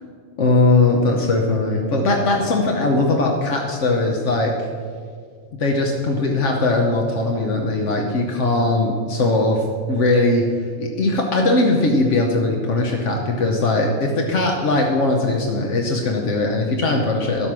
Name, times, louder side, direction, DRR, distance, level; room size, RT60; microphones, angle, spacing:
voice 1, 0.4-4.7 5.6-10.5 10.8-17.5, left 2 dB, 85° left, 1 dB, 1.3 m, -20 dB
11.0 x 8.4 x 6.0 m, 2.1 s
omnidirectional pair, 1.2 m